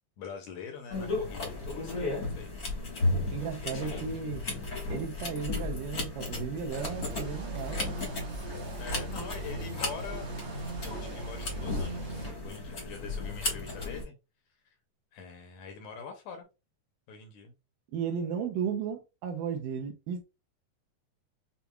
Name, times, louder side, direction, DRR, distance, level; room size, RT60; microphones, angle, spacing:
voice 1, 0.2-2.5 3.6-4.0 8.8-10.3 10.5-14.2 14.7-14.8 15.1-16.5 17.1-17.5, left 5 dB, 75° left, 1.9 m, -44 dB
sound 1, 0.9-14.0, left 2 dB, 50° left, 1.0 m, -35 dB
voice 2, 3.3-4.5 4.9-8.0 17.9-20.2, right 7 dB, 75° right, 2.1 m, -35 dB
sound 2, 6.8-12.3, right 2 dB, 55° right, 1.3 m, -39 dB
6.9 x 2.3 x 2.3 m
omnidirectional pair, 4.0 m